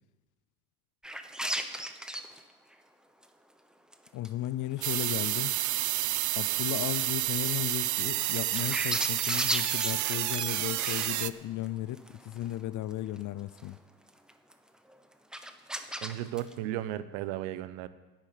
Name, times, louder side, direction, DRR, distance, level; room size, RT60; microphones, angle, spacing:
sound 1, 1.0-2.4 2.7-2.8 3.2-3.3 3.9-4.5 4.8-5.9 6.3-6.4 7.1-7.3 7.7-11.7 12.0-12.6 12.9-13.2 13.5-13.7 14.1-14.5 14.9-15.0 15.3-16.6, right 1 dB, ahead, 1.0 m, -36 dB
voice 1, 4.1-5.5 6.4-13.8, left 14 dB, 40° left, 17 dB, 0.6 m, -35 dB
sound 2, 4.8-11.3, right 16 dB, 40° right, 0.6 m, -30 dB
voice 2, 16.0-17.9, right 13 dB, 65° right, 14 dB, 0.9 m, -35 dB
10.0 x 9.1 x 8.6 m, 1.2 s
hypercardioid pair, 75°, 45 cm